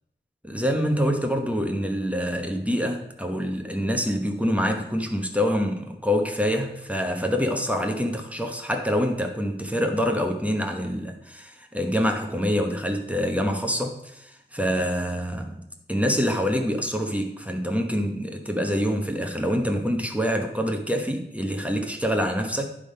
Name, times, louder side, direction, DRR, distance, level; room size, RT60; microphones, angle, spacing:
voice 1, 0.4-15.6 15.9-22.7, equal, 5° right, 3 dB, 1.0 m, -26 dB
10.5 x 3.6 x 5.4 m, 0.79 s
wide cardioid pair, 85°, 18 cm